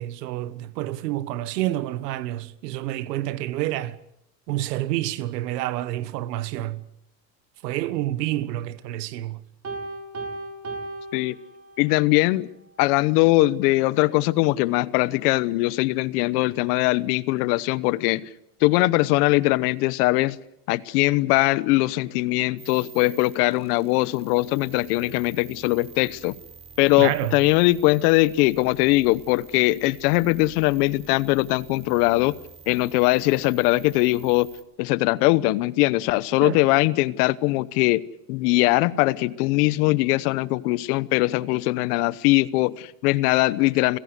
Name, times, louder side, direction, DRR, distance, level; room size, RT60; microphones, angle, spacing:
voice 1, 0.0-4.0 4.5-6.8 7.6-9.4 27.0-27.4 36.4-36.6, right 15 dB, 85° right, 1.5 m, -28 dB
Piano, 9.6-12.0, right 2 dB, 30° right, 6.0 m, -36 dB
voice 2, 11.8-12.5 12.8-18.3 18.6-20.4 20.7-26.3 26.8-32.3 32.7-34.5 34.8-38.0 38.3-44.0, left 20 dB, 70° left, 1.1 m, -21 dB
sound 1, 22.6-34.6, right 5 dB, 15° right, 4.3 m, -48 dB
29.5 x 16.5 x 8.2 m
supercardioid pair, 125°, 47 cm